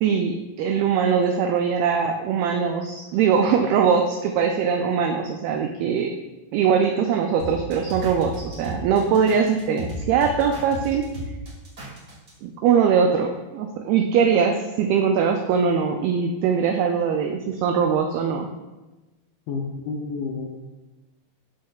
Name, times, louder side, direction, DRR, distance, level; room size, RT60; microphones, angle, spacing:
voice 1, 0.0-6.1 6.5-11.1 12.4-18.5, right 6 dB, 85° right, 4 dB, 2.1 m, -21 dB
sound 1, 7.4-12.3, equal, 40° right, 1.2 m, -34 dB
voice 2, 19.5-20.6, left 4 dB, 80° left, 1 dB, 2.3 m, -30 dB
13.5 x 4.7 x 2.3 m, 1.1 s
omnidirectional pair, 4.8 m